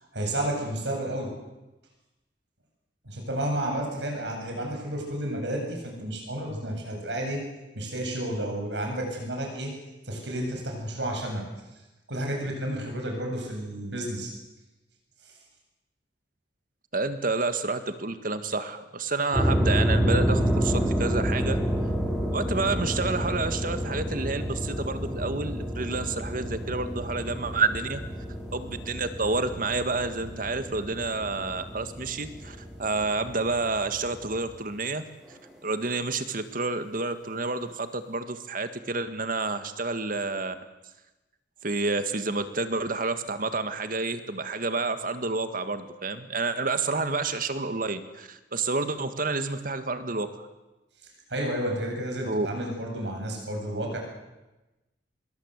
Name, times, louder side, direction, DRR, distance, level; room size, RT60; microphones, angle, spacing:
voice 1, 0.1-1.3 3.0-7.4 7.7-9.7 10.0-11.4 12.1-14.3 15.2-15.3 51.3-54.0, right 1 dB, 75° right, 1 dB, 8.0 m, -31 dB
voice 2, 16.9-21.6 22.3-28.0 28.5-35.0 35.6-40.5 41.6-50.5 52.3-52.5, right 3 dB, 50° right, 10 dB, 1.9 m, -29 dB
sound 1, 19.3-34.5, equal, 5° right, 5.5 m, -29 dB
25.5 x 22.5 x 8.3 m, 1.1 s
head